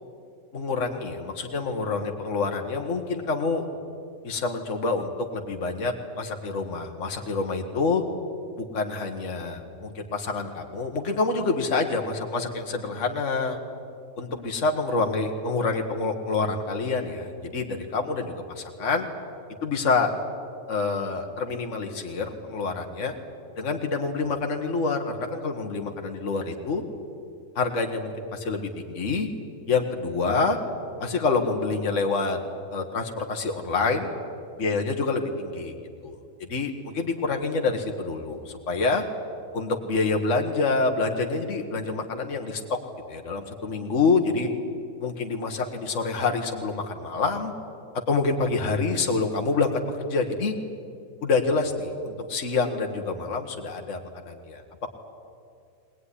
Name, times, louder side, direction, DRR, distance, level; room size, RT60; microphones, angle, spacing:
voice 1, 0.5-3.6 4.2-8.0 8.6-13.6 14.2-19.1 19.6-20.1 20.7-23.1 23.6-26.8 27.6-29.3 29.7-30.6 31.0-32.4 32.7-34.1 34.6-35.7 36.0-36.2 36.5-39.0 39.5-42.8 43.1-44.5 45.0-47.5 48.1-50.5 51.2-54.6, left 4 dB, 55° left, 3 dB, 1.9 m, -27 dB
21.0 x 20.0 x 10.0 m, 2.4 s
omnidirectional pair, 1.5 m